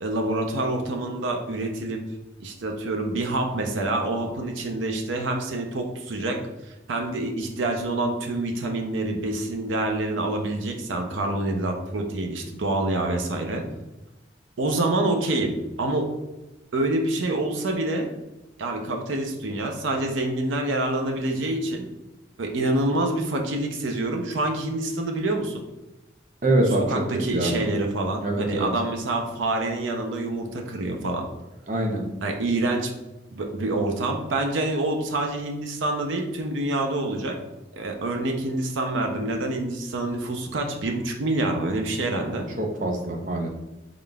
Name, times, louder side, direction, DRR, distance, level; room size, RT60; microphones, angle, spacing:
voice 1, 0.0-2.0 2.4-6.4 6.9-13.6 14.6-16.1 16.7-18.1 18.6-21.9 22.4-25.7 26.9-31.3 32.2-32.9 33.3-37.4 37.7-42.5, right 2 dB, 90° right, 3 dB, 0.6 m, -26 dB
voice 2, 26.4-26.8 27.3-27.5 28.2-28.7 31.7-32.0 42.6-43.5, right 1 dB, 40° right, 1 dB, 0.6 m, -24 dB
3.7 x 3.7 x 2.3 m, 1.0 s
head